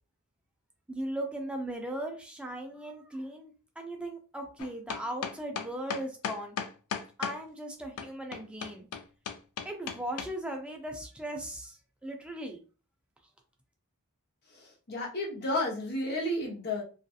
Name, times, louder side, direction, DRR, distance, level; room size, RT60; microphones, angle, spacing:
voice 1, 0.9-6.6 7.2-8.9 9.6-12.6, right 1 dB, 5° right, 2 dB, 0.4 m, -38 dB
sound 1, 4.6-7.4 8.0-10.3, left 7 dB, 85° left, 0.4 m, -36 dB
voice 2, 14.9-16.8, left 1 dB, 50° left, -1 dB, 0.8 m, -31 dB
2.6 x 2.3 x 2.3 m, 0.36 s
head